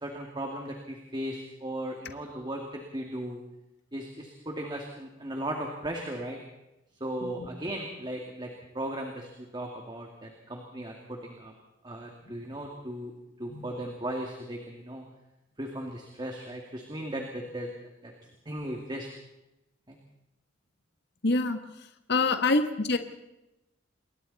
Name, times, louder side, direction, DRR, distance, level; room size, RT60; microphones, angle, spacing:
voice 1, 0.0-3.4 3.9-6.4 7.0-11.5 11.8-13.1 13.4-15.0 15.6-17.7 18.0-18.1 18.5-19.1 19.9-20.0, right 1 dB, 25° right, 1 dB, 2.4 m, -37 dB
voice 2, 21.2-21.6 22.1-23.0, left 3 dB, 60° left, 7 dB, 1.6 m, -26 dB
28.0 x 22.5 x 4.2 m, 0.93 s
head